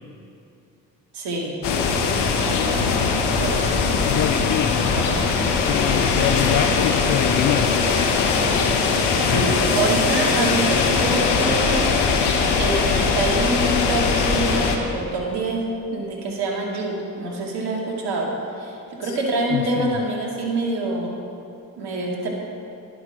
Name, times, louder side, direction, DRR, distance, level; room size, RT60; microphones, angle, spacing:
voice 1, 1.1-1.6 3.2-3.6 4.7-5.2 9.2-11.9 12.6-15.6 15.9-21.2 21.8-22.3, right 2 dB, 70° right, -1 dB, 2.3 m, -26 dB
sound 1, 1.6-14.8, left 4 dB, 75° left, 1.2 m, -20 dB
voice 2, 4.0-5.1 5.6-7.8 19.0-19.2 19.5-20.0, left 11 dB, 50° left, 11 dB, 0.5 m, -25 dB
10.5 x 8.2 x 6.0 m, 2.6 s
hypercardioid pair, 45°, 41 cm